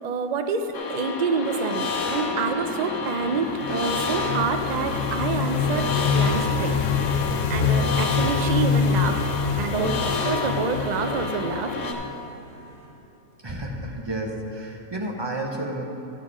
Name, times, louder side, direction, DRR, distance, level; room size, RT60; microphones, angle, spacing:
voice 1, 0.0-6.8 7.0-7.2 7.5-11.7, right 4 dB, 50° right, 6 dB, 0.5 m, -27 dB
sound 1, 0.7-11.9, left 3 dB, 70° left, 1.3 m, -29 dB
sound 2, 1.8-12.9, left 1 dB, 80° right, 2.1 m, -42 dB
sound 3, 3.3-12.1, left 6 dB, 90° left, 1.0 m, -26 dB
voice 2, 13.4-15.8, right 1 dB, 20° right, 0 dB, 0.8 m, -31 dB
12.0 x 7.3 x 4.9 m, 3.0 s
omnidirectional pair, 1.4 m